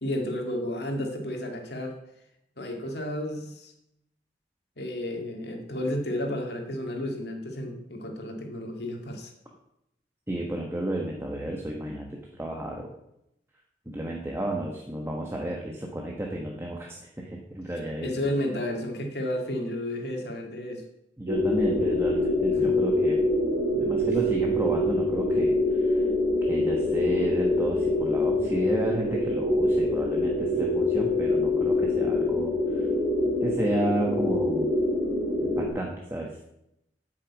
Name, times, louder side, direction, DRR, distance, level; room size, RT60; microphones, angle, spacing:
voice 1, 0.0-2.0 2.6-3.7 4.8-9.3 18.0-20.8 22.5-22.7, left 1 dB, 70° left, 2 dB, 2.2 m, -32 dB
voice 2, 10.3-12.9 13.9-18.3 21.2-23.3 23.7-26.0 26.5-32.9 33.4-34.7 35.4-36.3, right 1 dB, 15° right, -1 dB, 1.2 m, -32 dB
sound 1, 21.3-35.7, left 1 dB, 50° right, 2.9 m, -25 dB
8.6 x 6.5 x 8.5 m, 0.82 s
head